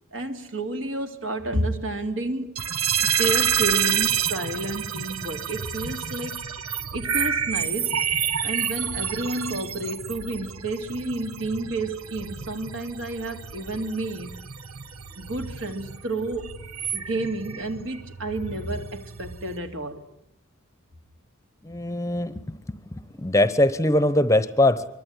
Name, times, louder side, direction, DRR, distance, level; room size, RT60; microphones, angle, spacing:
voice 1, 0.1-2.5 3.0-6.4 6.9-8.0 8.4-14.3 15.2-16.5 16.9-20.1, right 2 dB, 65° right, 3.2 m, -30 dB
sound 1, 2.6-19.6, right 8 dB, 90° right, 1.5 m, -29 dB
voice 2, 21.6-24.9, left 1 dB, 15° left, 1.0 m, -22 dB
24.5 x 23.0 x 10.0 m
head